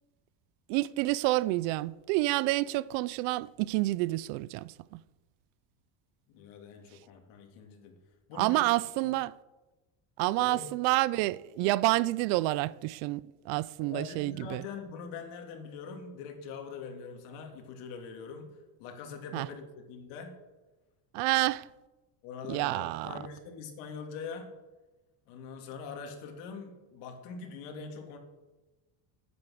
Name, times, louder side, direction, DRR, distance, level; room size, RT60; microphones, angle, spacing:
voice 1, 0.7-5.0 8.4-9.3 10.2-14.6 19.3-19.5 21.1-21.7 22.5-23.1, right 19 dB, 75° right, 0.6 m, -29 dB
voice 2, 6.3-8.0 8.3-8.7 9.0-9.1 10.4-10.7 13.8-20.4 22.2-24.5 25.3-28.2, left 5 dB, 75° left, 2.6 m, -43 dB
9.6 x 9.0 x 7.7 m
cardioid pair, 155°, 49 cm